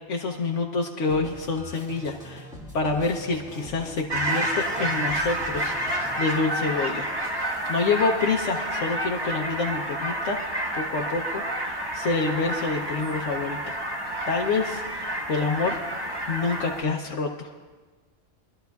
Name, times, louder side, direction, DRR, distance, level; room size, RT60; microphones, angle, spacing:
voice 1, 0.1-2.5 2.7-10.4 10.7-13.7 14.3-17.5, left 4 dB, 80° left, 1 dB, 1.2 m, -27 dB
sound 1, 1.1-6.2, left 1 dB, 5° right, 1.7 m, -42 dB
sound 2, 4.1-16.8, right 1 dB, 20° right, 1.2 m, -29 dB
24.5 x 12.0 x 2.3 m, 1.3 s
omnidirectional pair, 1.2 m